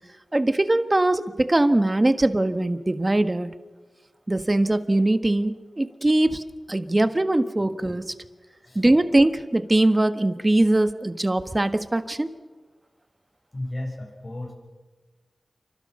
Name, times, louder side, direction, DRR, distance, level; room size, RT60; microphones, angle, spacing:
voice 1, 0.3-3.6 4.3-6.4 6.7-8.1 8.7-12.3, right 1 dB, 30° right, 10 dB, 1.5 m, -21 dB
voice 2, 13.5-14.5, left 1 dB, 40° left, 1 dB, 7.5 m, -34 dB
28.0 x 25.0 x 5.5 m, 1.3 s
cardioid pair, 55°, 0 cm